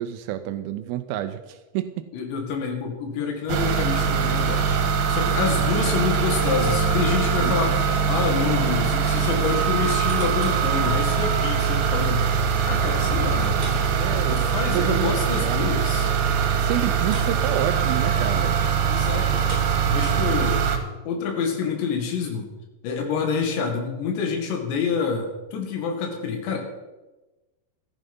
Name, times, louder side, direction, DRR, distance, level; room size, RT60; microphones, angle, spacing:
voice 1, 0.0-2.1 7.4-7.8 13.5-14.4 14.7-15.1 15.4-15.7 16.6-18.6 20.1-20.3, right 12 dB, 90° right, 9 dB, 2.1 m, -29 dB
voice 2, 2.1-4.8 5.1-7.7 8.1-12.3 12.7-16.2 18.9-19.5 19.9-20.7 21.1-22.5 22.8-26.6, left 5 dB, 75° left, 3 dB, 4.3 m, -27 dB
sound 1, 3.5-20.8, right 6 dB, 70° right, 3.2 m, -22 dB
sound 2, 9.8-10.7 11.2-11.3 13.4-14.9 15.2-15.3 15.7-15.8 17.0-17.4 17.7-17.9 19.2-20.5 21.1-21.2, right 1 dB, 25° right, 5.4 m, -40 dB
14.5 x 10.5 x 5.5 m, 1.1 s
omnidirectional pair, 5.1 m